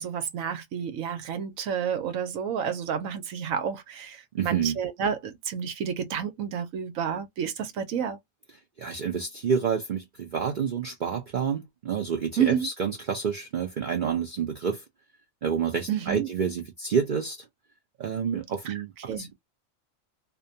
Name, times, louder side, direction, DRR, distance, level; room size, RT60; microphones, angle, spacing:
voice 1, 0.0-8.2 12.4-12.7 15.9-16.3 18.6-19.3, right 8 dB, 85° right, 1.1 m, -30 dB
voice 2, 4.3-4.8 8.8-14.8 15.4-17.4 18.0-19.3, right 6 dB, 50° right, 0.6 m, -28 dB
2.6 x 2.2 x 2.6 m
omnidirectional pair, 1.4 m